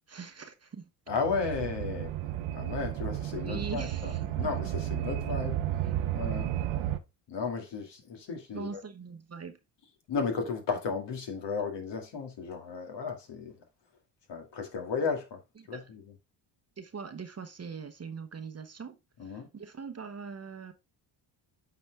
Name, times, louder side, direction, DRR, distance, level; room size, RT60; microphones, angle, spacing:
voice 1, 0.1-0.9 3.4-4.5 8.5-9.6 15.7-15.9 16.8-20.7, right 5 dB, 30° right, 1.1 m, -42 dB
voice 2, 1.1-2.1 2.5-5.6 6.1-6.5 7.3-8.8 10.1-13.6 14.3-15.4 15.7-16.1 19.2-19.5, left 5 dB, 55° left, 2.2 m, -34 dB
sound 1, 1.1-7.0, right 12 dB, 75° right, 1.0 m, -33 dB
8.3 x 4.3 x 3.4 m
supercardioid pair, 70°, 49 cm